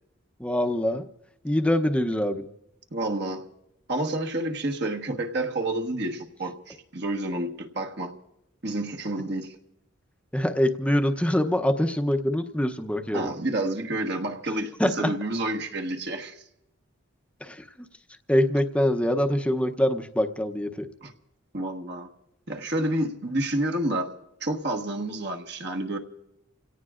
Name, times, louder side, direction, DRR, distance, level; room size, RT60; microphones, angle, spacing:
voice 1, 0.4-1.1 1.4-2.5 10.3-13.3 14.8-15.1 17.4-17.6 18.3-20.9, left 1 dB, 5° left, 6 dB, 0.7 m, -24 dB
voice 2, 2.9-3.5 3.9-8.1 8.6-9.6 13.1-16.4 21.0-21.1 21.5-22.1 22.5-24.1 24.4-26.0, right 1 dB, 55° right, 2 dB, 1.4 m, -29 dB
29.5 x 17.5 x 2.5 m, 0.88 s
head